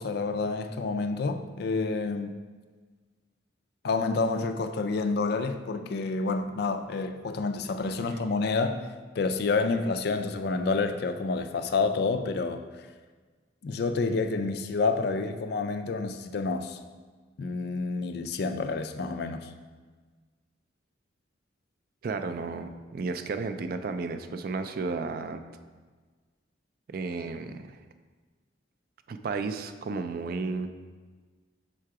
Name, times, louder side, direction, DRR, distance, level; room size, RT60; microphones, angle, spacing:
voice 1, 0.0-2.3 3.8-8.9 9.2-12.6 13.6-16.8 17.4-19.5, left 4 dB, 55° left, 8 dB, 0.3 m, -28 dB
voice 2, 22.0-25.4 26.9-27.8 29.1-30.7, right 4 dB, 50° right, 9 dB, 0.3 m, -33 dB
5.7 x 3.7 x 4.7 m, 1.4 s
head